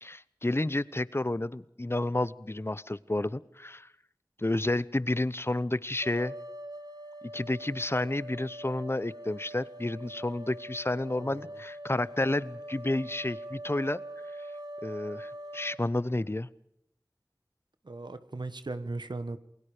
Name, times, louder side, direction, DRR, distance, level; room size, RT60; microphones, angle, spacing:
voice 1, 0.0-3.9 4.4-6.3 7.3-14.0 14.8-16.5, left 2 dB, 35° left, 18 dB, 0.9 m, -30 dB
sound 1, 6.0-15.8, right 1 dB, 65° right, 2.5 m, -43 dB
voice 2, 11.1-11.5 17.8-19.4, right 2 dB, 80° right, 11 dB, 1.3 m, -38 dB
28.5 x 21.5 x 5.0 m, 0.75 s
wide cardioid pair, 50°, 8 cm